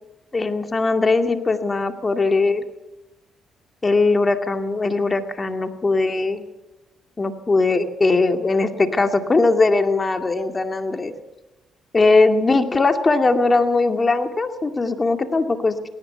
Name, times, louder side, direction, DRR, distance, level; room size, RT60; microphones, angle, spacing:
voice 1, 0.3-2.6 3.8-6.5 7.2-11.1 11.9-15.9, left 3 dB, 25° left, 6 dB, 2.3 m, -20 dB
19.0 x 18.0 x 8.1 m, 1.0 s
cardioid pair, 90°, 0 cm